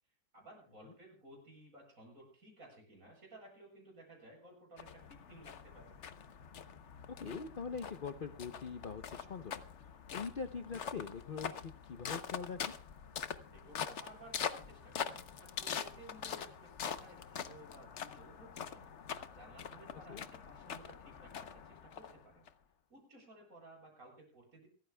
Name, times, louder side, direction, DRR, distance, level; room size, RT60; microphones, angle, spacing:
voice 1, 0.3-5.9 13.5-18.9 19.3-22.5 22.9-24.7, right 1 dB, 45° right, 0 dB, 8.6 m, -57 dB
sound 1, 4.8-22.5, left 7 dB, 50° left, 0.9 m, -44 dB
voice 2, 7.2-9.6 10.1-12.7 20.1-20.3, left 5 dB, 70° left, 9 dB, 0.5 m, -43 dB
27.5 x 14.0 x 2.2 m, 0.42 s
omnidirectional pair, 2.0 m